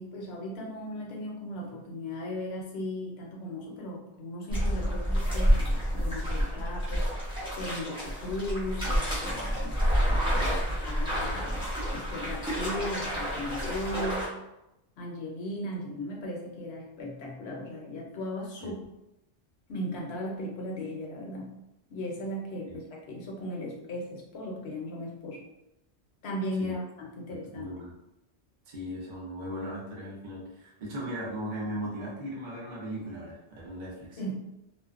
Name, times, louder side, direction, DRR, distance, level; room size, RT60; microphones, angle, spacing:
voice 1, 0.0-7.1 7.6-9.8 10.8-14.3 15.0-18.8 19.7-21.5 21.9-25.4 26.2-27.7 34.2-34.4, left 1 dB, 70° left, -1 dB, 0.9 m, -37 dB
sound 1, 4.5-14.3, equal, 5° right, 0.6 m, -29 dB
voice 2, 27.3-27.9 28.7-34.2, equal, 50° right, -5 dB, 0.8 m, -38 dB
2.5 x 2.1 x 2.4 m, 0.90 s
omnidirectional pair, 1.2 m